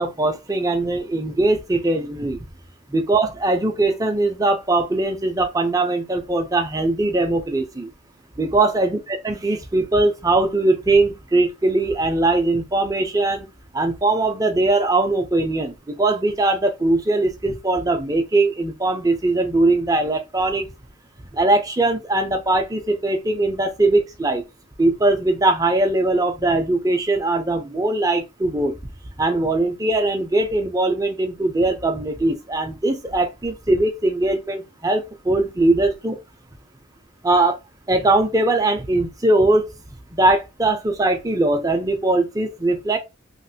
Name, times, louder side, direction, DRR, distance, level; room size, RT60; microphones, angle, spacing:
voice 1, 0.0-2.4 2.9-7.9 8.4-13.5 13.7-20.7 21.3-24.4 24.8-28.8 29.2-36.2 37.2-37.6 37.9-39.7 40.1-43.0, right 2 dB, 20° right, 0.6 m, -20 dB
3.2 x 2.4 x 2.7 m
head